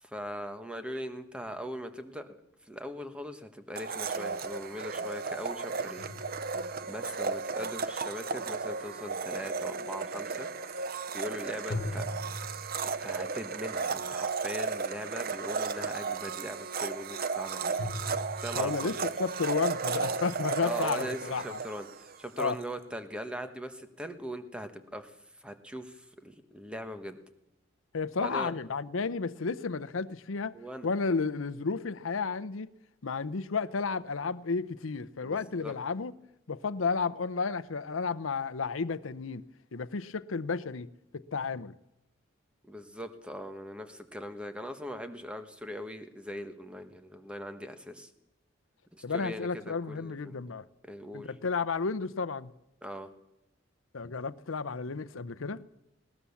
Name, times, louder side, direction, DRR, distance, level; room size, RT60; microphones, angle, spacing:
voice 1, 0.0-2.4 2.6-6.1 6.9-10.5 11.1-12.0 12.8-17.8 18.4-19.0 20.6-27.2 28.2-28.5 30.5-30.9 35.2-35.7 42.6-48.1 48.9-50.4 50.8-51.3 52.8-53.1, equal, 5° right, 1.4 m, -40 dB
Domestic sounds home sounds, 3.8-22.5, right 4 dB, 50° right, 0.7 m, -34 dB
sound 1, 6.0-7.1 11.7-13.3 17.8-18.9, left 1 dB, 55° left, 1.8 m, -39 dB
voice 2, 18.5-21.6 22.4-22.6 27.9-30.5 30.8-32.7 33.0-36.1 36.5-39.4 39.7-40.9 41.1-41.7 49.0-50.6 51.1-52.5 53.9-55.6, left 4 dB, 90° left, 0.7 m, -32 dB
20.0 x 18.5 x 7.2 m
head